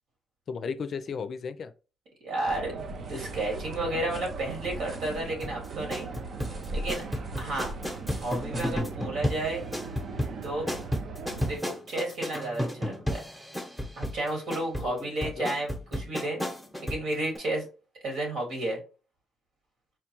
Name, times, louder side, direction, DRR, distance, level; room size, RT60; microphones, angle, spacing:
voice 1, 0.5-1.7 14.8-15.5, left 5 dB, 55° left, 0.4 m, -35 dB
voice 2, 2.2-2.7 3.1-6.1 6.7-7.0 7.4-7.7 8.1-9.7 10.4-10.7 11.4-13.2 14.0-16.4 16.8-17.6 18.0-18.8, right 1 dB, 80° right, 1.9 m, -32 dB
sound 1, 2.5-11.6, right 4 dB, 65° right, 0.5 m, -39 dB
sound 2, 2.8-8.8, equal, 45° right, 1.1 m, -43 dB
sound 3, 5.4-17.1 17.3-17.4, equal, 5° right, 0.9 m, -33 dB
4.4 x 2.3 x 3.0 m
cardioid pair, 90°, 0 cm